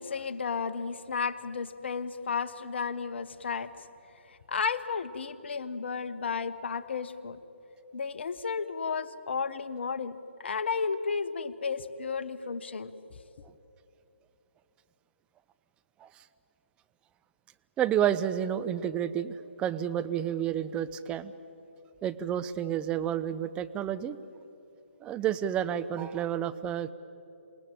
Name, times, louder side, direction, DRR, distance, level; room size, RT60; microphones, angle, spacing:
voice 1, 0.0-3.7 4.5-7.4 7.9-10.2 10.4-12.9, left 5 dB, 60° left, 12 dB, 1.2 m, -33 dB
voice 2, 17.8-21.3 22.0-24.2 25.0-26.9, right 10 dB, 15° right, 11 dB, 0.7 m, -30 dB
28.0 x 18.5 x 9.1 m, 2.9 s
figure-of-eight pair, 135°, 7 cm